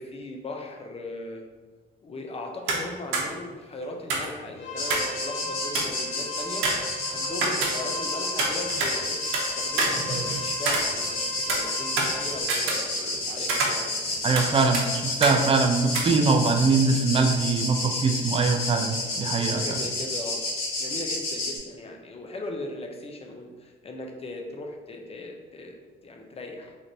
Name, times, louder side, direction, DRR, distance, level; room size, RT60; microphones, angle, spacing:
voice 1, 0.0-1.4 2.0-6.7 7.1-11.2 11.5-14.2 19.5-20.5 20.8-26.8, left 2 dB, 30° left, 2 dB, 0.6 m, -38 dB
sound 1, 2.7-2.9 3.1-3.2 4.1-5.2 5.4-5.5 5.7-6.0 6.6-8.1 8.4-9.4 9.8-11.2 11.5-13.2 13.5-14.5 14.7-14.8 15.2-15.4 15.9-16.0, right 3 dB, 90° right, 0.7 m, -27 dB
sound 2, 4.5-12.4, left 2 dB, 65° left, 1.0 m, -37 dB
sound 3, 4.8-21.6, left 2 dB, 85° left, 1.4 m, -30 dB
voice 2, 14.2-19.8, right 4 dB, 30° right, 3 dB, 0.5 m, -23 dB
3.3 x 2.5 x 4.0 m, 1.4 s
cardioid pair, 90°, 20 cm